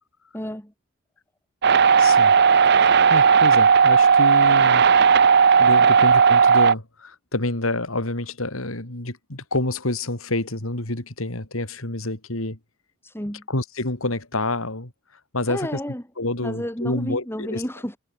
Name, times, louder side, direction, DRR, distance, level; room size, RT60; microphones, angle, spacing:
voice 1, 0.3-0.7 5.8-5.9 13.0-13.5 15.5-16.0 16.4-18.0, equal, 10° left, 3.7 m, -31 dB
sound 1, 1.6-6.7, right 6 dB, 50° right, 0.6 m, -15 dB
voice 2, 2.0-2.3 2.8-4.9 5.6-12.6 13.5-14.9 15.3-15.8 16.2-17.6, left 2 dB, 75° left, 3.5 m, -28 dB
head